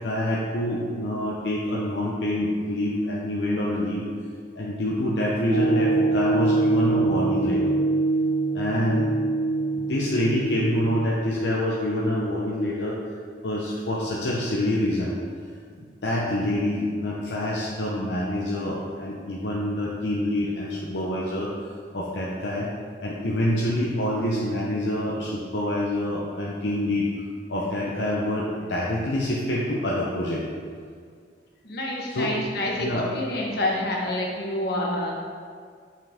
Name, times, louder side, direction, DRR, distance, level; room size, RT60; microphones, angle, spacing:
voice 1, 0.0-4.0 4.5-7.8 8.5-9.1 9.7-13.0 13.4-15.1 15.8-21.5 21.9-22.7 23.0-27.1 27.5-30.4 32.1-32.3 32.8-33.1, left 1 dB, 80° left, -4 dB, 0.8 m, -26 dB
sound 1, 5.5-11.0, right 3 dB, 65° right, 1.5 m, -24 dB
voice 2, 31.6-32.9 33.1-35.1, left 1 dB, 65° left, -2 dB, 1.4 m, -27 dB
7.3 x 5.8 x 3.6 m, 2.1 s
head